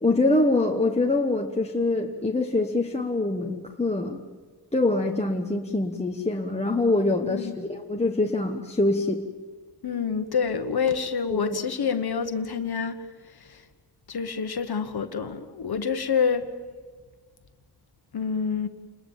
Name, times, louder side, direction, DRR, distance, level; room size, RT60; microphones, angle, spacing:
voice 1, 0.0-4.2 4.7-9.2 11.3-11.4, left 2 dB, 15° left, 1 dB, 1.2 m, -24 dB
voice 2, 7.2-7.5 9.8-13.0 13.5-13.6 14.1-16.4 18.1-18.7, left 6 dB, 65° left, 8 dB, 1.3 m, -27 dB
29.0 x 21.0 x 7.3 m, 1.4 s
wide cardioid pair, 155°, 40 cm